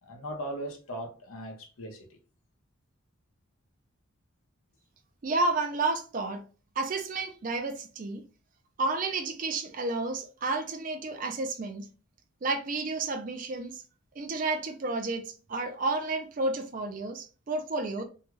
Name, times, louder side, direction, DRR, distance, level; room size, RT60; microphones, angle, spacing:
voice 1, 0.0-2.2, right 1 dB, 85° left, 0.8 m, -39 dB
voice 2, 5.2-6.4 6.8-8.2 8.8-11.9 12.4-13.8 14.2-18.0, right 3 dB, 40° right, 0.4 m, -31 dB
2.7 x 2.3 x 2.9 m
head